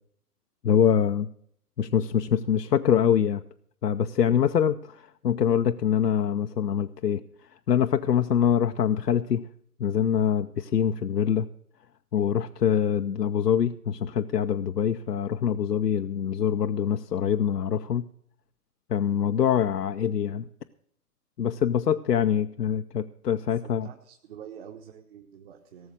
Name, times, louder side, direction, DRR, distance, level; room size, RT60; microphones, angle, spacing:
voice 1, 0.6-1.3 1.8-3.4 3.8-7.2 7.7-9.4 9.8-11.5 12.1-18.1 18.9-20.4 21.4-23.9, left 8 dB, 85° left, 8 dB, 0.7 m, -24 dB
voice 2, 23.5-25.9, right 8 dB, 40° right, 3 dB, 1.4 m, -46 dB
17.5 x 7.2 x 6.4 m, 0.66 s
figure-of-eight pair, 125°, 47 cm